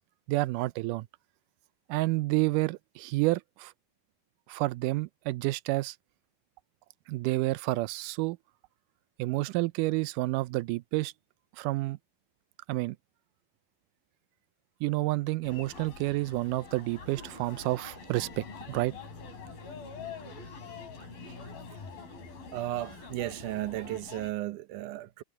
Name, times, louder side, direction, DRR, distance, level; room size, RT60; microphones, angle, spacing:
voice 1, 0.3-1.1 1.9-3.7 4.5-6.0 7.1-8.4 9.2-11.1 11.6-12.0 12.7-13.0 14.8-18.9, right 20 dB, 90° right, 1.8 m, -29 dB
sound 1, 15.4-24.3, left 5 dB, 70° left, 7.7 m, -45 dB
voice 2, 22.5-25.2, right 15 dB, 70° right, 2.0 m, -34 dB
omnidirectional pair, 4.3 m